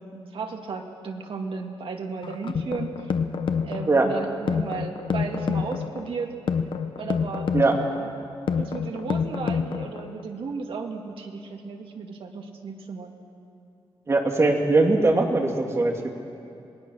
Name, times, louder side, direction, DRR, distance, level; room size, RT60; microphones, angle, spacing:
voice 1, 0.0-3.1 3.6-6.3 7.0-7.5 8.0-8.1 8.6-13.1, right 4 dB, 70° right, 2 dB, 2.1 m, -34 dB
sound 1, 2.2-10.2, left 6 dB, 60° left, 0.9 m, -28 dB
voice 2, 14.1-16.1, right 2 dB, 30° right, 1 dB, 2.2 m, -21 dB
27.0 x 20.0 x 6.3 m, 2.7 s
wide cardioid pair, 160°, 9 cm